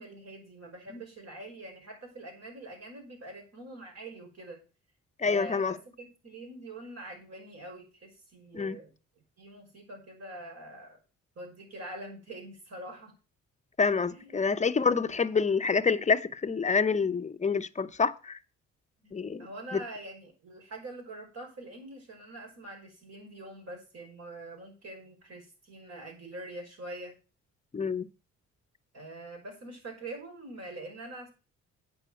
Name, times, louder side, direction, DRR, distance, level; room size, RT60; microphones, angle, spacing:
voice 1, 0.0-4.6 5.2-8.9 9.4-11.0 11.4-13.1 14.1-14.4 19.0-19.1 19.4-27.1 28.9-31.3, right 2 dB, 55° right, 5.6 m, -44 dB
voice 2, 5.2-5.8 8.5-8.8 13.8-18.4 19.1-19.5 19.7-19.8 27.7-28.1, left 5 dB, 25° left, 0.7 m, -27 dB
9.0 x 5.6 x 7.7 m
cardioid pair, 90°, 30 cm